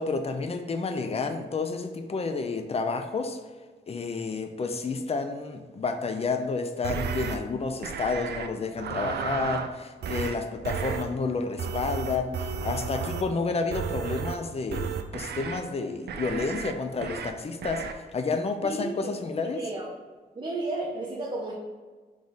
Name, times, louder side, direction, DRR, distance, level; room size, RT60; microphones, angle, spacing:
voice 1, 0.0-3.4 3.9-19.6, left 4 dB, 35° left, 6 dB, 0.5 m, -30 dB
sound 1, 6.8-7.4 7.8-8.5 8.8-9.7 10.0-10.4 10.6-11.0 11.6-13.3 13.7-14.4 14.7-15.6 16.1-16.7 17.0-17.3 17.6-17.9, right 6 dB, 75° right, 0.4 m, -32 dB
voice 2, 18.6-19.1 19.6-19.9 20.3-21.5, right 2 dB, 30° right, -4 dB, 0.7 m, -32 dB
3.9 x 3.2 x 3.9 m, 1.4 s
cardioid pair, 95°, 17 cm